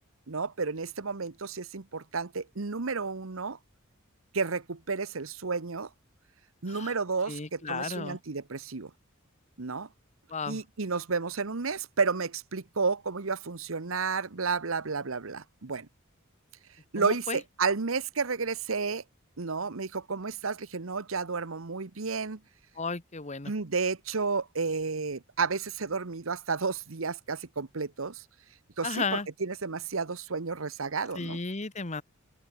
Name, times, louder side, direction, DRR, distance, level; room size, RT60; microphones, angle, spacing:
voice 1, 0.3-3.6 4.3-5.9 6.6-8.9 9.6-9.9 10.5-15.9 16.9-19.0 19.4-22.4 23.5-28.2 28.8-31.4, right 4 dB, 75° right, 1.1 m, -31 dB
voice 2, 7.3-8.2 10.3-10.6 17.0-17.4 22.8-23.5 28.8-29.3 31.1-32.0, left 4 dB, 35° left, 1.4 m, -34 dB
open air
head